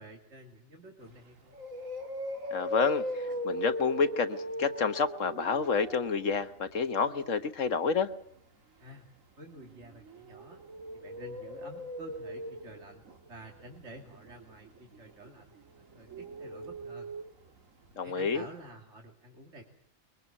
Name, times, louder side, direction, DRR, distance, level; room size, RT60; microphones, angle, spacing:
voice 1, 0.0-1.6 8.8-9.1 9.4-10.6 10.9-13.0 13.3-17.1 18.0-19.6, right 1 dB, 60° right, 1 dB, 2.8 m, -50 dB
sound 1, 1.1-1.2 1.5-7.4 9.6-17.6 17.8-17.9 18.3-18.4, equal, 80° right, 2.3 m, -40 dB
voice 2, 2.5-8.1 18.0-18.4, left 5 dB, 70° left, 10 dB, 1.7 m, -29 dB
23.0 x 22.5 x 7.4 m, 0.69 s
omnidirectional pair, 1.4 m